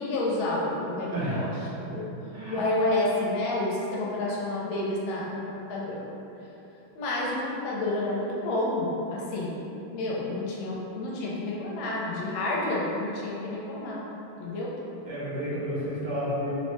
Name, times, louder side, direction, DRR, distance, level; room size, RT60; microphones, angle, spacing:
voice 1, 0.0-1.5 1.8-2.1 2.5-6.0 6.9-14.0 14.4-14.7, left 2 dB, 85° left, -5 dB, 1.4 m, -29 dB
voice 2, 1.1-1.4 2.3-2.6 15.0-16.5, equal, 65° right, -9 dB, 1.4 m, -31 dB
3.8 x 2.1 x 3.0 m, 3.0 s
omnidirectional pair, 2.2 m